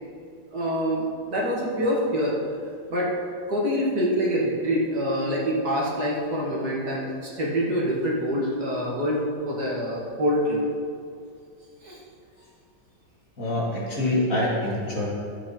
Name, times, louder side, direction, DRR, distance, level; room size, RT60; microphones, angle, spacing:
voice 1, 0.5-2.3 2.9-3.1 3.5-10.6 11.8-12.0, equal, 55° right, -4 dB, 2.3 m, -25 dB
voice 2, 13.4-15.1, left 1 dB, 45° left, -6 dB, 2.6 m, -25 dB
12.5 x 7.7 x 4.3 m, 2.3 s
omnidirectional pair, 2.0 m